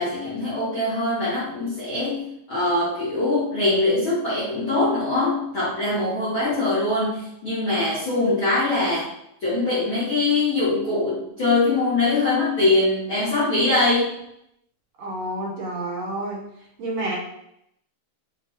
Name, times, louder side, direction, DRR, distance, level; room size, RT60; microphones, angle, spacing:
voice 1, 0.0-9.1 9.4-14.1, left 2 dB, 60° left, -11 dB, 1.3 m, -22 dB
voice 2, 15.0-16.5 16.8-17.2, right 1 dB, 55° right, -4 dB, 2.4 m, -29 dB
6.0 x 2.5 x 3.0 m, 0.77 s
omnidirectional pair, 4.2 m